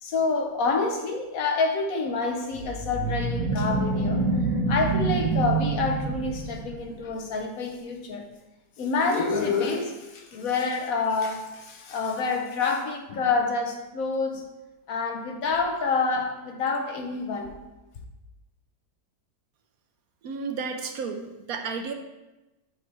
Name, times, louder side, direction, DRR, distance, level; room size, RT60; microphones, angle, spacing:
voice 1, 0.0-4.2 4.7-8.3 8.8-14.5 14.9-17.6, left 4 dB, 65° left, 3 dB, 1.0 m, -27 dB
sound 1, 2.5-6.9, right 3 dB, 85° right, 1.5 m, -26 dB
voice 2, 20.2-21.9, right 5 dB, 70° right, 5 dB, 1.0 m, -32 dB
7.9 x 3.2 x 4.6 m, 1.0 s
omnidirectional pair, 1.8 m